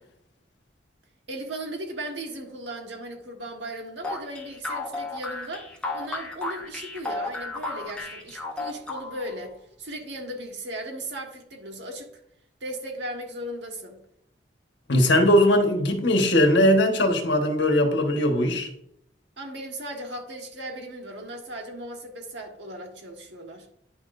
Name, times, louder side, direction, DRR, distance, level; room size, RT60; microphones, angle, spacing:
voice 1, 1.3-12.1 12.6-14.0 19.4-23.7, right 1 dB, 70° right, 1.5 m, -37 dB
sound 1, 4.0-9.4, left 2 dB, 5° left, 1.3 m, -33 dB
voice 2, 14.9-18.7, left 1 dB, 70° left, 1.3 m, -20 dB
9.9 x 5.9 x 2.6 m
head